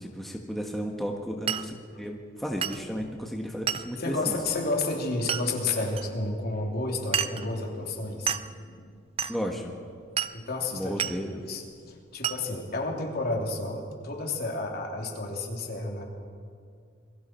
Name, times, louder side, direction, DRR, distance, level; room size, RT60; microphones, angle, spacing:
voice 1, 0.0-4.4 9.3-9.7 10.7-11.4, equal, ahead, 0 dB, 1.4 m, -34 dB
Glass, 1.5-1.7 2.6-2.8 3.7-3.9 5.3-5.5 6.0-6.1 7.1-7.5 8.3-8.5 9.2-9.4 10.2-10.4 11.0-11.2 12.2-12.4, right 8 dB, 30° right, 0.6 m, -29 dB
voice 2, 4.0-9.0 10.3-11.0 11.3-11.6 11.9-16.0, left 2 dB, 55° left, 0 dB, 3.2 m, -31 dB
27.5 x 22.5 x 4.5 m, 2.2 s
head